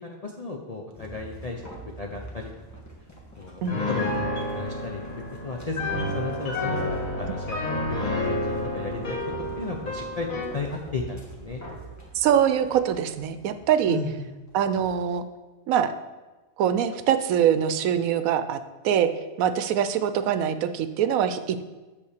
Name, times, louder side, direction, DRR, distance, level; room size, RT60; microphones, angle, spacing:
voice 1, 0.0-2.5 3.4-7.6 7.9-9.2 9.6-10.3 10.5-11.6 13.9-14.3, left 3 dB, 50° left, 0 dB, 0.4 m, -34 dB
sound 1, 0.9-15.0, right 1 dB, 15° left, 1.3 m, -45 dB
Piano, 3.7-10.6, left 1 dB, 80° left, 1.8 m, -30 dB
voice 2, 12.1-14.0 14.5-15.2 15.7-15.9 16.6-18.6 18.8-19.1 19.4-21.7, right 9 dB, 85° right, 11 dB, 1.0 m, -23 dB
8.4 x 3.5 x 6.5 m, 1.2 s
omnidirectional pair, 1.4 m